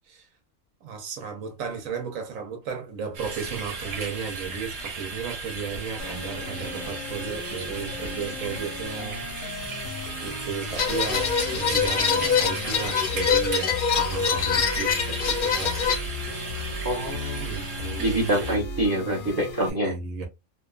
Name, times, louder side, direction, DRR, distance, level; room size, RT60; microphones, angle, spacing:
voice 1, 0.8-9.2 10.2-15.8 17.4-18.3 19.3-20.3, right 6 dB, 85° right, 1.1 m, -35 dB
sound 1, 3.1-18.6, right 4 dB, 55° right, 1.0 m, -36 dB
sound 2, 6.0-19.7, left 2 dB, 80° left, 1.1 m, -36 dB
sound 3, 10.8-16.0, left 6 dB, 55° left, 0.6 m, -24 dB
voice 2, 16.8-17.5 18.0-19.9, right 1 dB, 25° right, 0.6 m, -25 dB
2.7 x 2.2 x 2.3 m
omnidirectional pair, 1.4 m